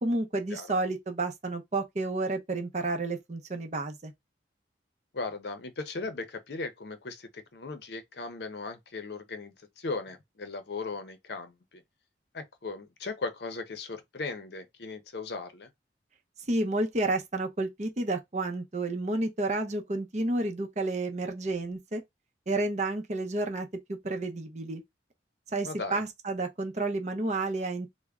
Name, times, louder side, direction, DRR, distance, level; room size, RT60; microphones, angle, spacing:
voice 1, 0.0-4.1 16.5-22.0 22.5-24.8 25.5-27.9, right 2 dB, 40° right, 0.6 m, -30 dB
voice 2, 5.1-11.8 12.3-15.7 25.6-26.0, left 3 dB, 65° left, 0.6 m, -37 dB
3.4 x 2.1 x 3.5 m
head